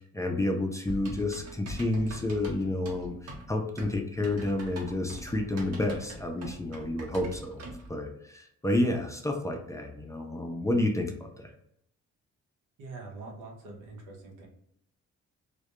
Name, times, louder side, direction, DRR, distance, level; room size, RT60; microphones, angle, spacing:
voice 1, 0.0-7.6 7.9-11.5, left 1 dB, 10° left, 2 dB, 0.3 m, -30 dB
Typing, 0.9-7.9, right 1 dB, 55° right, 0.8 m, -43 dB
voice 2, 12.8-14.5, right 3 dB, 90° right, 0 dB, 0.7 m, -44 dB
2.2 x 2.1 x 2.9 m, 0.75 s
cardioid pair, 90°, 30 cm